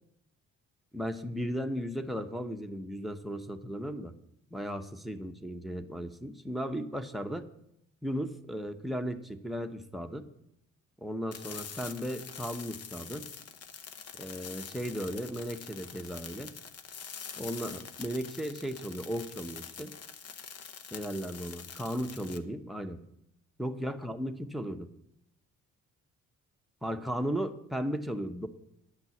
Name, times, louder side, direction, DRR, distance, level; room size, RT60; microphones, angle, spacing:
voice 1, 0.9-4.1 4.5-7.4 8.0-10.3 11.0-13.3 14.2-16.5 17.4-19.9 20.9-23.0 23.6-24.9 26.8-28.5, equal, ahead, 5 dB, 0.9 m, -36 dB
sound 1, 11.3-22.4, left 6 dB, 55° left, 1.0 m, -45 dB
10.5 x 6.0 x 7.9 m, 0.77 s
cardioid pair, 90°, 30 cm